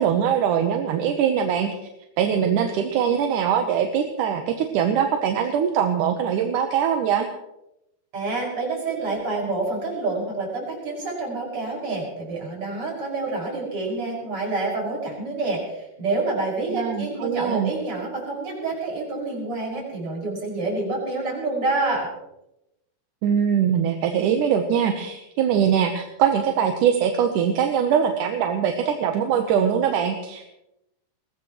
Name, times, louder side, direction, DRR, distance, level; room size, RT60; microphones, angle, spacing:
voice 1, 0.0-1.7 2.2-7.3 16.7-17.7 23.2-30.5, right 8 dB, 75° right, 4 dB, 2.5 m, -22 dB
voice 2, 8.1-22.1, right 3 dB, 40° right, -4 dB, 6.8 m, -28 dB
22.5 x 18.0 x 3.1 m, 0.88 s
omnidirectional pair, 3.8 m